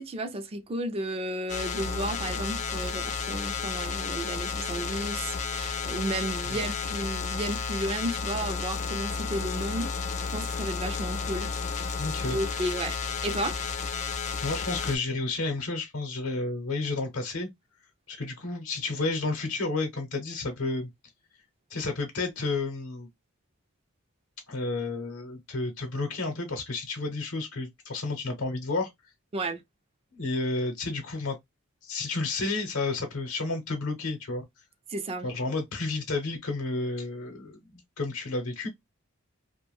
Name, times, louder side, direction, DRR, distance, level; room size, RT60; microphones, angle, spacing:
voice 1, 0.0-9.9 10.3-11.5 12.3-13.0 13.2-13.6 29.3-29.6 34.9-35.3, right 1 dB, 30° right, 0.4 m, -33 dB
sound 1, 1.5-15.0, left 5 dB, 35° left, 0.4 m, -32 dB
voice 2, 12.0-12.4 14.0-17.5 18.1-20.9 21.7-23.1 24.5-28.9 30.1-31.4 31.8-34.4 35.2-38.7, left 3 dB, 80° left, 0.8 m, -31 dB
2.5 x 2.1 x 3.1 m
head